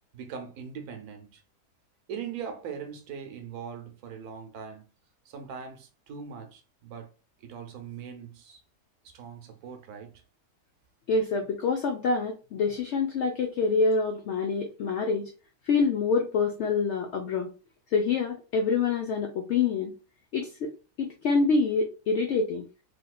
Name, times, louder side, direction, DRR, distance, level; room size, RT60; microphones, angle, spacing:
voice 1, 0.1-1.4 2.1-4.9 5.3-7.1 7.4-8.6 9.0-10.2, right 7 dB, 70° right, 1.1 m, -41 dB
voice 2, 11.1-15.3 15.7-17.5 17.9-19.9 20.3-20.7 21.0-22.7, left 4 dB, 85° left, 0.6 m, -26 dB
3.4 x 2.6 x 2.3 m
omnidirectional pair, 1.7 m